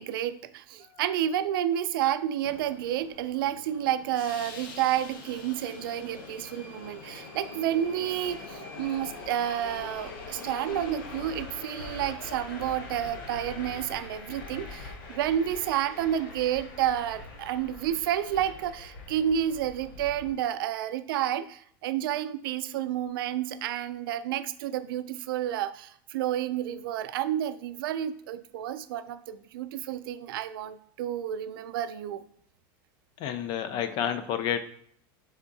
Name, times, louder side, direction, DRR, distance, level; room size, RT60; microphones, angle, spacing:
voice 1, 0.0-32.3, right 11 dB, 85° right, 13 dB, 0.4 m, -30 dB
Subway metro underground, 2.4-20.3, left 3 dB, 75° left, 0.8 m, -43 dB
voice 2, 33.2-34.6, left 9 dB, 40° left, 10 dB, 0.4 m, -30 dB
3.6 x 3.5 x 4.0 m, 0.63 s
supercardioid pair, 150°, 12 cm